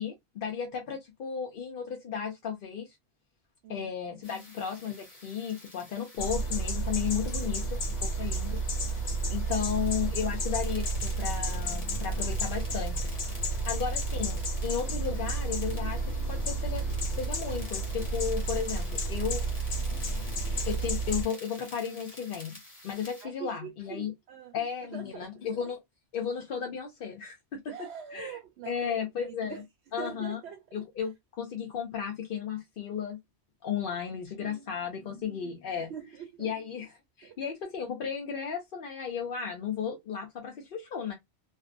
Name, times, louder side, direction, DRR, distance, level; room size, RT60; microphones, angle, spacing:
voice 1, 0.0-3.0 3.7-8.6 9.3-13.1 13.6-19.5 20.4-22.5 22.8-24.1 24.5-25.8 26.1-27.7 28.1-28.4 28.7-29.6 29.9-30.4 30.7-33.2 33.6-35.9 36.4-36.9 37.2-41.1, left 7 dB, 60° left, 0.7 m, -34 dB
voice 2, 3.6-4.2 23.2-24.5 24.8-25.5 27.7-29.0 29.3-30.6 34.4-35.3 35.8-36.5 37.2-37.4, right 8 dB, 70° right, 0.8 m, -44 dB
sound 1, 4.2-23.2, left 1 dB, 35° left, 1.1 m, -49 dB
sound 2, 6.2-21.2, right 2 dB, 75° left, 1.0 m, -31 dB
2.5 x 2.1 x 2.4 m
omnidirectional pair, 1.2 m